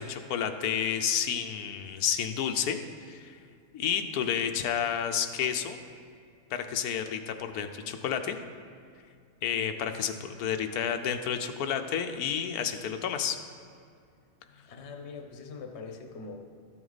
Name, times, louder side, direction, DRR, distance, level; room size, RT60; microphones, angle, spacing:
voice 1, 0.0-2.8 3.1-3.4 3.7-5.8 6.5-8.4 9.4-13.4, left 8 dB, 85° left, 7 dB, 1.2 m, -30 dB
voice 2, 14.5-16.4, left 4 dB, 55° left, 4 dB, 1.1 m, -43 dB
13.0 x 7.8 x 4.0 m, 2.3 s
omnidirectional pair, 1.5 m